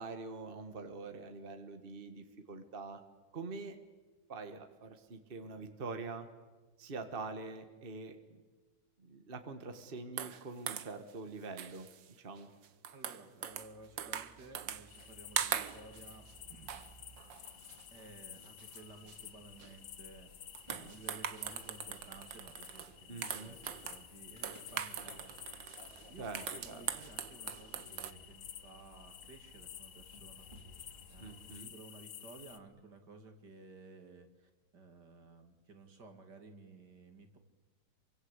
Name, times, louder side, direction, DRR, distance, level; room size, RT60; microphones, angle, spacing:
voice 1, 0.0-3.0 3.3-3.8 4.3-6.3 6.8-8.4 9.0-11.9 12.2-12.5 23.1-23.6 26.2-26.9 31.2-31.7, right 3 dB, 30° right, 7 dB, 1.8 m, -45 dB
sound 1, 10.2-11.1 11.6-12.1 12.4-13.7 14.0-15.1 15.4-16.3 16.7-16.9 17.2-18.0 18.4-18.8 19.1-19.2 19.6-19.8 20.5-22.9 23.2-24.0 24.4-28.1, right 9 dB, 80° right, 1.8 m, -41 dB
voice 2, 12.9-16.8 17.9-20.3 20.8-25.4 26.1-30.5 31.1-37.4, right 3 dB, 65° right, 6 dB, 2.9 m, -55 dB
sound 2, 13.5-31.6, right 1 dB, 15° right, 3.9 m, -60 dB
sound 3, 14.9-32.6, left 10 dB, 75° left, 1.7 m, -53 dB
27.5 x 24.5 x 8.2 m, 1.3 s
omnidirectional pair, 2.0 m